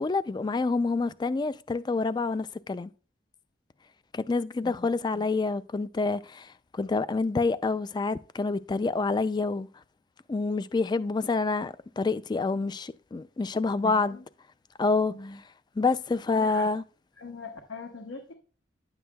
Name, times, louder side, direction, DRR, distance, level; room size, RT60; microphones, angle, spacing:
voice 1, 0.0-2.9 4.1-9.7 10.3-14.2 14.8-15.1 15.8-16.8, left 3 dB, 25° left, 0.3 m, -27 dB
voice 2, 13.8-14.2 15.1-15.4 16.3-16.7 17.2-18.3, left 3 dB, 85° left, 1.0 m, -41 dB
10.0 x 7.9 x 2.3 m
head